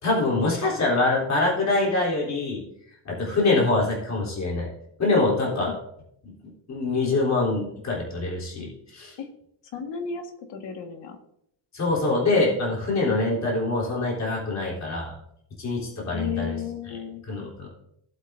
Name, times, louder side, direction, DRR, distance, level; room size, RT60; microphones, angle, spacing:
voice 1, 0.0-2.6 3.1-4.7 5.0-5.7 6.2-6.3 6.7-9.1 11.7-15.1 15.6-16.6 16.9-17.0 17.3-17.7, left 2 dB, 40° left, -3 dB, 3.5 m, -24 dB
voice 2, 9.7-11.2 16.1-17.2, left 7 dB, 85° left, 4 dB, 1.8 m, -33 dB
17.0 x 8.1 x 2.7 m, 0.73 s
wide cardioid pair, 180°, 42 cm